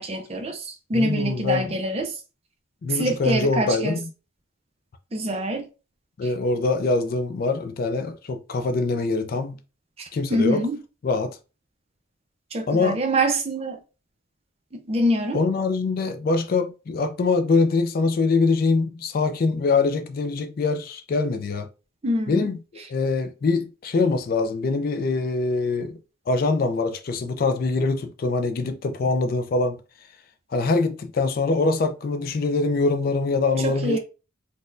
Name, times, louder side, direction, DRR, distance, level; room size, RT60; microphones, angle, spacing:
voice 1, 0.0-2.1 2.9-4.0 5.1-5.7 10.0-10.8 12.5-13.8 14.7-15.4 22.0-22.5 33.6-34.0, right 1 dB, 30° right, 0.5 m, -25 dB
voice 2, 0.9-1.7 2.8-4.0 6.2-9.6 10.1-10.7 11.0-11.4 12.7-13.0 15.3-21.7 22.3-26.0 26.3-29.8 30.5-34.0, left 3 dB, 45° left, 0.3 m, -23 dB
4.1 x 2.1 x 2.4 m
head